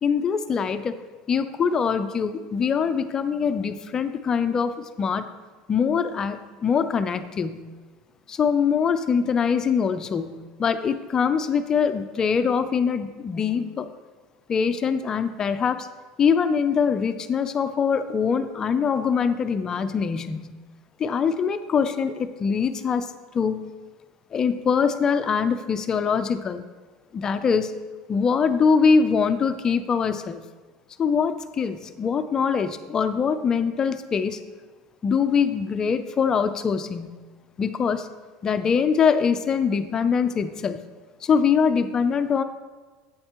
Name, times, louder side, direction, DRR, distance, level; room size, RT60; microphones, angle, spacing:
voice 1, 0.0-1.0 1.3-5.3 5.7-7.7 8.3-13.9 14.5-15.9 16.2-20.5 21.0-23.7 24.3-26.7 27.1-27.8 28.1-30.4 31.0-34.4 35.0-37.2 37.6-38.1 38.4-40.8 41.2-42.4, left 6 dB, 20° left, 10 dB, 0.4 m, -23 dB
8.8 x 8.0 x 3.0 m, 1.4 s
cardioid pair, 160°, 3 cm